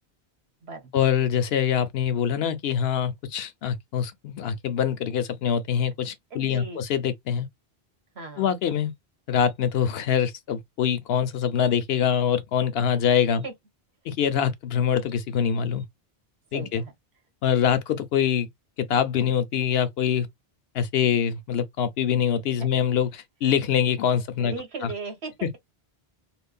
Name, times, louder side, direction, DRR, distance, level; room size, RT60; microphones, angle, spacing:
voice 1, 0.9-7.5 8.4-8.9 9.3-13.4 14.1-15.9 16.5-16.8 17.4-18.5 18.8-20.3 20.7-24.5 24.8-24.9 25.4-25.5, left 8 dB, 75° left, 0.8 m, -24 dB
voice 2, 6.3-6.8 8.1-8.5 13.4-13.5 16.5-16.9 24.4-25.6, right 3 dB, 75° right, 1.3 m, -37 dB
3.2 x 2.1 x 2.3 m
omnidirectional pair, 1.1 m